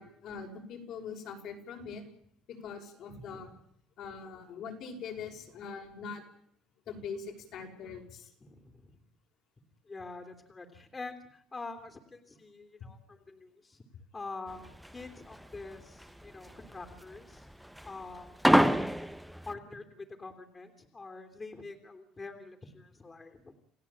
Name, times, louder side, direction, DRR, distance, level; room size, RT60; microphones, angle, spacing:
voice 1, 0.0-2.0 2.6-3.5 4.0-6.2 6.9-8.3, left 5 dB, 65° left, 3 dB, 6.2 m, -42 dB
voice 2, 8.4-8.9 9.9-13.8 14.1-17.5 17.8-18.4 19.4-23.5, left 3 dB, 25° left, 6 dB, 3.3 m, -46 dB
sound 1, 14.5-19.5, equal, ahead, 1.4 m, -27 dB
29.5 x 16.0 x 8.8 m, 0.70 s
supercardioid pair, 90°, 0 cm